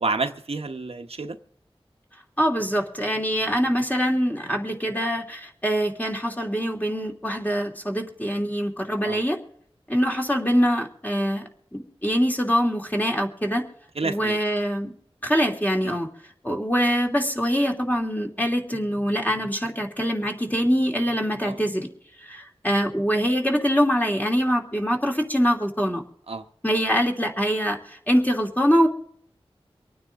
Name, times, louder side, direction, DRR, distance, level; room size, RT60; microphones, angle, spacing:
voice 1, 0.0-1.4 9.0-9.2 14.0-14.4 15.8-16.0 21.4-21.6 26.3-26.4, right 3 dB, 75° right, 1.1 m, -29 dB
voice 2, 2.4-9.4 9.9-13.6 14.0-14.9 15.2-16.1 16.4-21.9 22.2-26.0 26.6-28.9, equal, 15° left, 2.9 m, -24 dB
25.5 x 9.5 x 3.7 m
wide cardioid pair, 70°, 10 cm